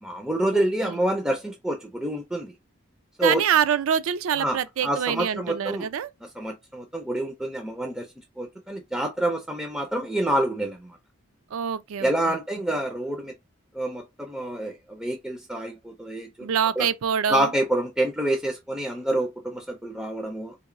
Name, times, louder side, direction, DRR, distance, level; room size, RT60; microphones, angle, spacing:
voice 1, 0.0-2.5 3.2-3.4 4.4-5.9 6.4-8.1 8.4-11.0 12.0-13.3 13.7-16.5 16.8-16.9 17.3-20.6, right 1 dB, 5° right, 0.3 m, -27 dB
voice 2, 0.5-1.0 3.2-6.1 11.5-12.4 16.4-17.5, right 8 dB, 80° right, 0.4 m, -25 dB
3.6 x 2.9 x 2.5 m
head